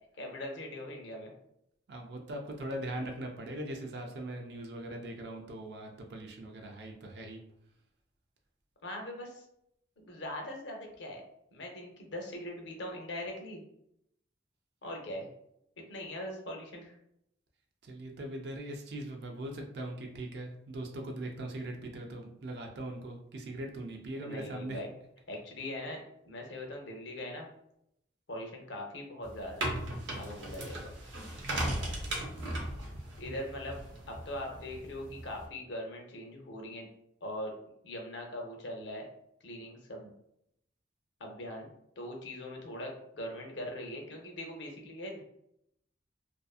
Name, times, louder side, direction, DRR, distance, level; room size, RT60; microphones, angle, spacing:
voice 1, 0.1-1.3 8.8-9.4 10.0-11.2 11.5-13.6 14.8-15.3 15.9-17.0 24.2-24.9 25.3-27.5 28.3-29.7 30.2-30.9 33.2-33.8 34.1-36.9 37.2-37.5 37.8-39.1 39.4-40.1 41.2-41.7 42.0-45.2, left 1 dB, 70° left, 1 dB, 0.6 m, -41 dB
voice 2, 1.9-7.4 17.8-24.8, right 1 dB, 55° right, 2 dB, 0.4 m, -40 dB
sound 1, 29.2-35.5, right 1 dB, 80° right, 0.7 m, -37 dB
2.5 x 2.5 x 2.3 m, 0.76 s
head